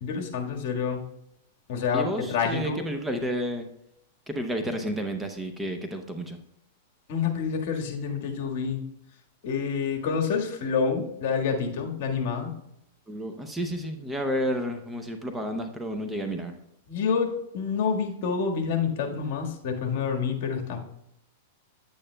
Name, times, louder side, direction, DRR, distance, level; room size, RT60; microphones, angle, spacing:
voice 1, 0.0-1.0 1.7-2.8 7.1-8.8 9.4-12.5 16.9-20.8, left 6 dB, 55° left, 2 dB, 1.6 m, -28 dB
voice 2, 1.9-3.7 4.3-6.4 13.1-16.5, equal, 10° right, 5 dB, 0.7 m, -31 dB
9.7 x 8.7 x 2.2 m, 0.78 s
hypercardioid pair, 135°, 0 cm